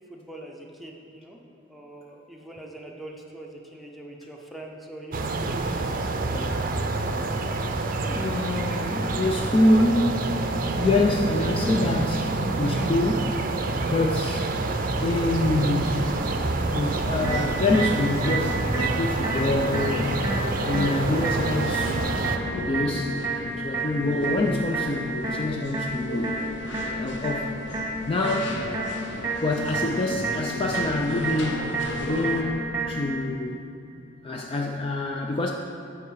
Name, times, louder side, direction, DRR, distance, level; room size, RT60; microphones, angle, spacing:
voice 1, 0.1-1.4 1.7-5.7 6.3-6.5, right 1 dB, ahead, 0 dB, 0.7 m, -42 dB
sound 1, 5.1-22.4, right 2 dB, 45° right, 0.5 m, -27 dB
voice 2, 8.0-10.3 10.8-12.3 12.6-13.4 13.9-14.5 15.0-16.2 16.7-20.3 20.6-22.0 22.6-23.3 23.6-26.4 27.0-27.6 28.1-28.6 29.4-33.7 34.2-35.5, left 2 dB, 30° left, 1 dB, 0.4 m, -26 dB
sound 2, 15.0-32.4, left 1 dB, 65° left, 0.8 m, -37 dB
sound 3, 17.2-33.2, right 2 dB, 20° right, 1.2 m, -31 dB
8.7 x 4.7 x 6.3 m, 2.7 s
head